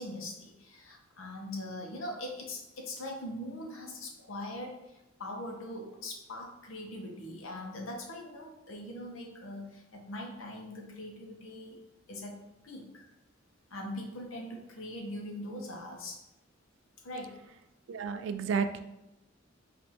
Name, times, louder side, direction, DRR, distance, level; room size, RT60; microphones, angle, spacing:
voice 1, 0.0-11.8 12.1-12.4 12.6-13.1 13.7-16.2 17.0-17.5, left 1 dB, 90° left, 1 dB, 0.8 m, -41 dB
voice 2, 17.9-18.8, right 5 dB, 65° right, 9 dB, 0.3 m, -31 dB
5.1 x 2.5 x 2.9 m, 0.94 s
head